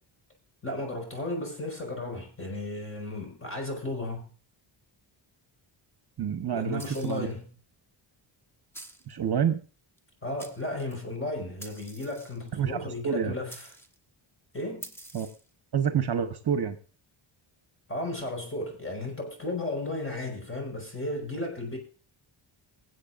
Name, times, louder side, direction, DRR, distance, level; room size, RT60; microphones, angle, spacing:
voice 1, 0.6-4.3 6.5-7.5 10.2-13.7 14.5-14.9 17.9-21.8, left 2 dB, 25° left, 5.2 m, -34 dB
voice 2, 6.2-7.3 9.1-9.6 12.5-13.3 15.1-15.3 15.7-16.8, right 8 dB, 50° right, 1.1 m, -28 dB
sound 1, 6.8-7.3 8.7-9.1 10.0-10.1 10.4-11.0 11.6-12.5 13.5-14.0 14.8-15.5, right 1 dB, 5° left, 1.2 m, -47 dB
24.0 x 8.0 x 2.5 m
cardioid pair, 100°, 49 cm